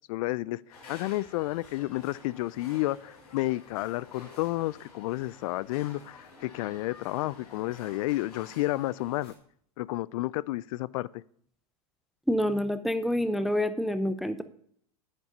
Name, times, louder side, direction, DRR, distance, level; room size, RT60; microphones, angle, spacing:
voice 1, 0.1-0.6 0.9-9.3 9.8-11.2, left 18 dB, 60° left, 21 dB, 0.4 m, -31 dB
sound 1, 0.7-9.3, left 3 dB, 85° left, 4.5 m, -51 dB
voice 2, 12.3-14.4, left 1 dB, ahead, 11 dB, 0.6 m, -27 dB
9.8 x 9.7 x 5.4 m, 0.63 s
hypercardioid pair, 105°, 19 cm